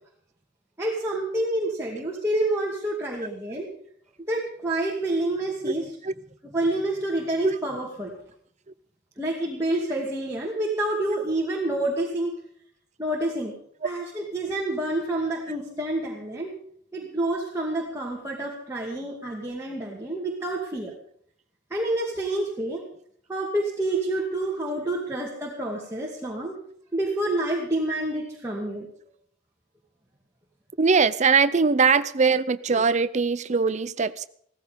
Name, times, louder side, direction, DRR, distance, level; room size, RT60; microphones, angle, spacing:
voice 1, 0.8-3.7 4.3-5.8 6.5-8.1 9.2-12.3 13.0-13.5 13.8-16.5 16.9-20.9 21.7-22.8 23.3-26.6 26.9-28.9, right 1 dB, 15° right, 2.4 m, -28 dB
voice 2, 30.8-34.2, right 5 dB, 40° right, 0.6 m, -21 dB
16.0 x 15.0 x 5.2 m
head